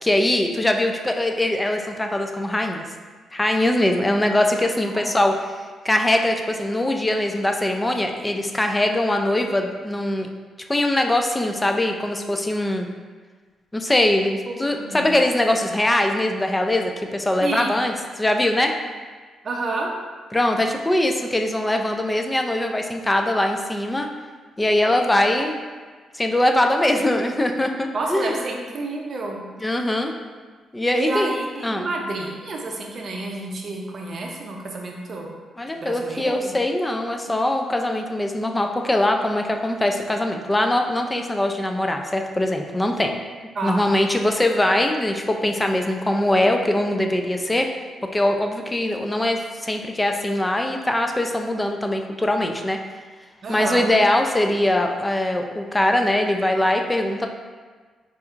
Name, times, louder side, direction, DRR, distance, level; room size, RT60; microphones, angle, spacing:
voice 1, 0.0-2.8 3.3-5.6 5.8-10.3 10.7-12.9 13.7-18.7 20.3-24.1 24.6-25.6 26.1-28.4 29.6-30.1 30.7-31.3 31.6-31.9 35.6-43.2 43.6-47.7 48.1-52.8 53.5-57.3, left 1 dB, 15° left, 4 dB, 0.3 m, -22 dB
voice 2, 14.5-15.1 17.4-17.8 19.4-19.9 27.9-29.4 30.9-35.3 35.8-36.5 43.6-43.8 53.4-53.8, right 2 dB, 55° right, 0 dB, 0.5 m, -29 dB
4.1 x 2.4 x 2.4 m, 1.4 s
cardioid pair, 75°, 0 cm